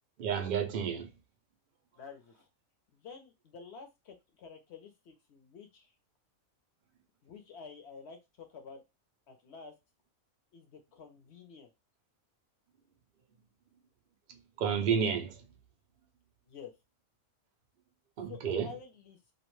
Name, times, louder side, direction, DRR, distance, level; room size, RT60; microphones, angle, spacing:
voice 1, 0.2-1.1 14.6-15.4 18.2-18.7, right 7 dB, 65° right, 0.5 m, -30 dB
voice 2, 2.0-2.5 2.9-5.9 7.2-8.8 9.3-9.7 10.5-11.7 16.5-16.7 18.3-19.2, left 5 dB, 60° left, 0.8 m, -50 dB
2.4 x 2.1 x 3.0 m
omnidirectional pair, 1.5 m